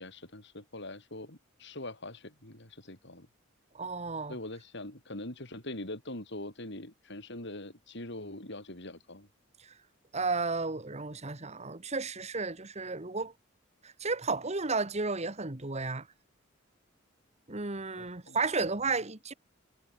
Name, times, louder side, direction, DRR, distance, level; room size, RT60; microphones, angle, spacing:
voice 1, 0.0-3.3 4.3-9.3 18.0-18.4, left 1 dB, 60° left, 5.5 m, -43 dB
voice 2, 3.7-4.4 10.1-13.3 13.8-16.1 17.5-19.3, right 4 dB, 35° right, 1.7 m, -33 dB
head